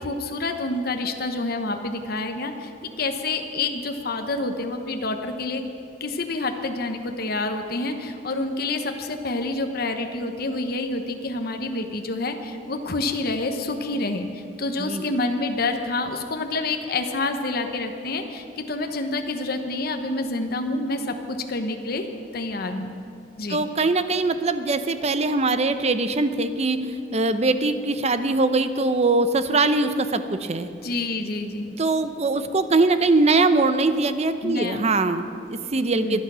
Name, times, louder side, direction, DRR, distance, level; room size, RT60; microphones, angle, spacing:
voice 1, 0.0-2.7 3.0-5.6 6.0-22.1 22.3-22.9 23.4-23.7 30.8-31.7 34.4-34.9 35.9-36.2, left 2 dB, 55° left, 5 dB, 1.0 m, -28 dB
voice 2, 14.8-15.2 23.5-30.7 31.8-36.2, right 3 dB, 35° right, 10 dB, 0.7 m, -22 dB
24.0 x 8.5 x 6.2 m, 2.5 s
head